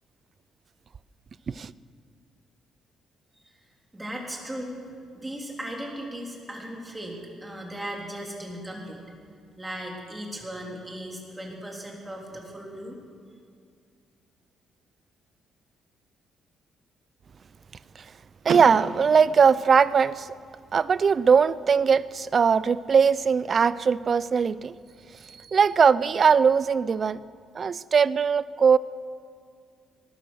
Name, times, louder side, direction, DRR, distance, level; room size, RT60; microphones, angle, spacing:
voice 1, 3.9-4.8 5.1-9.0 9.6-13.0, right 1 dB, 15° right, -1 dB, 3.5 m, -37 dB
Car / Door, 18.4-20.4, right 6 dB, 65° right, 0.9 m, -35 dB
voice 2, 18.5-20.3 20.7-24.7 25.2-27.2 27.6-28.8, right 6 dB, 45° right, 19 dB, 0.4 m, -20 dB
19.5 x 12.0 x 6.4 m, 2.2 s
cardioid pair, 90°, 0 cm